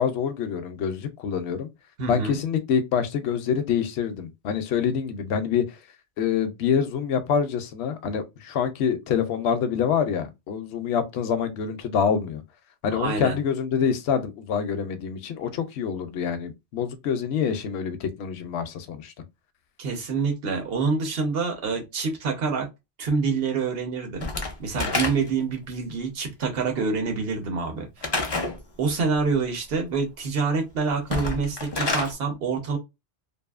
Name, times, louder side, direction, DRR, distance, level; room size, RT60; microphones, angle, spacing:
voice 1, 0.0-1.7 2.1-5.6 6.2-12.4 12.8-19.1, left 7 dB, 75° left, 0.8 m, -26 dB
voice 2, 2.0-2.4 12.9-13.4 19.8-22.7 23.0-24.3 24.6-28.0 28.8-32.8, right 4 dB, 60° right, 1.1 m, -26 dB
Slam / Wood, 24.2-25.5 28.0-28.6 31.0-32.1, left 3 dB, 30° left, 0.5 m, -28 dB
2.6 x 2.5 x 2.3 m
omnidirectional pair, 1.2 m